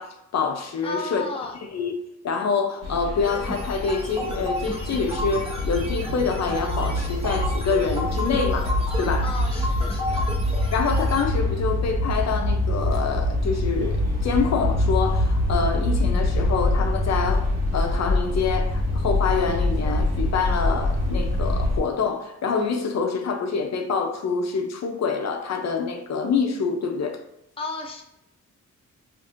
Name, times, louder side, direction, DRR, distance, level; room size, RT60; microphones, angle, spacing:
voice 1, 0.0-1.2 1.7-1.9 2.2-9.3 10.7-27.2, left 5 dB, 60° left, 3 dB, 0.6 m, -26 dB
voice 2, 0.8-1.5 9.2-10.2 27.6-28.0, left 3 dB, 20° left, 1 dB, 0.5 m, -33 dB
sound 1, 2.8-21.8, left 1 dB, 55° right, 1.1 m, -25 dB
sound 2, 3.2-11.2, left 1 dB, 20° right, 0.9 m, -33 dB
5.9 x 2.5 x 2.5 m, 0.81 s
wide cardioid pair, 125°, 31 cm